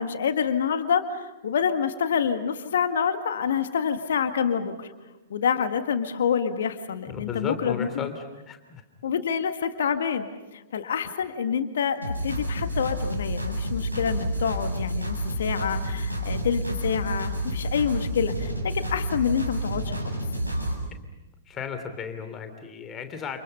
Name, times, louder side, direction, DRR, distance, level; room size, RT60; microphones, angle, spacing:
voice 1, 0.0-4.9 5.3-8.1 9.0-20.1, left 7 dB, 60° left, 8 dB, 1.8 m, -27 dB
voice 2, 7.1-8.8 21.5-23.4, left 6 dB, 20° left, 7 dB, 3.1 m, -35 dB
sound 1, 12.0-20.7, right 1 dB, 90° right, 7.5 m, -29 dB
29.5 x 29.0 x 5.6 m, 1.1 s
figure-of-eight pair, 105°, 0 cm